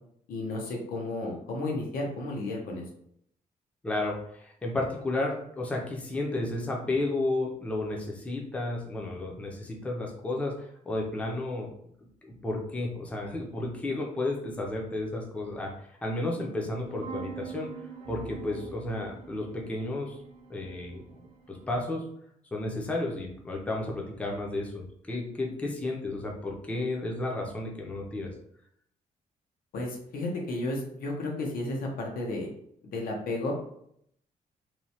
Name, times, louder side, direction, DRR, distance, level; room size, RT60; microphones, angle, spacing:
voice 1, 0.3-2.8 29.7-32.5 32.9-33.5, left 2 dB, 90° left, 0 dB, 0.7 m, -33 dB
voice 2, 3.8-10.5 10.9-11.7 12.4-15.7 16.0-17.7 18.1-20.2 20.5-21.0 21.5-22.0 22.5-28.3, left 2 dB, 10° left, -1 dB, 0.4 m, -32 dB
sound 1, 16.8-21.8, right 6 dB, 45° right, 0.5 m, -44 dB
3.0 x 2.1 x 2.7 m, 0.70 s
wide cardioid pair, 175°, 15 cm